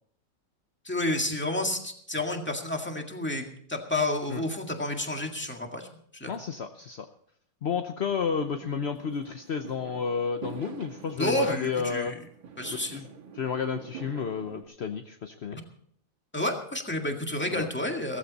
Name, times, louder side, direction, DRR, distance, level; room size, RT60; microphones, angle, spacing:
voice 1, 0.8-5.9 6.1-6.3 11.2-12.2 12.6-13.0 16.3-18.2, left 1 dB, 5° left, 2 dB, 1.7 m, -30 dB
voice 2, 6.3-7.1 7.6-12.2 12.7-13.1 13.3-15.6 17.4-17.7, left 6 dB, 60° left, 6 dB, 0.7 m, -31 dB
Fireworks, 8.4-14.6, right 7 dB, 80° right, 2.5 m, -46 dB
16.5 x 14.5 x 4.2 m, 0.64 s
omnidirectional pair, 2.1 m